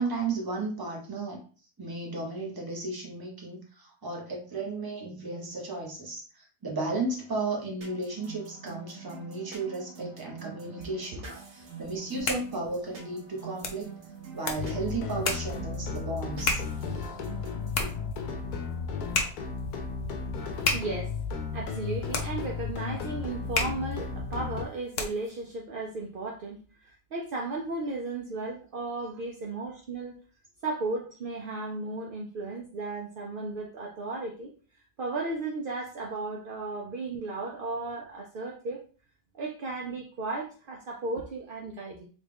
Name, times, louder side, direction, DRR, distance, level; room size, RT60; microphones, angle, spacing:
voice 1, 0.0-1.4 1.8-11.2 11.8-13.9 14.3-17.2, right 3 dB, 20° right, -2 dB, 0.7 m, -34 dB
sound 1, 7.8-18.1, right 6 dB, 50° right, 1.1 m, -46 dB
voice 2, 10.9-11.4 20.7-21.2 21.5-30.2 30.6-34.5 35.0-38.8 39.3-42.1, right 3 dB, 75° right, -1 dB, 0.5 m, -35 dB
sound 2, 11.9-25.4, left 3 dB, 55° left, 0.7 m, -35 dB
sound 3, 14.6-24.6, left 5 dB, 85° left, 1.1 m, -34 dB
3.7 x 2.4 x 3.4 m, 0.39 s
omnidirectional pair, 1.6 m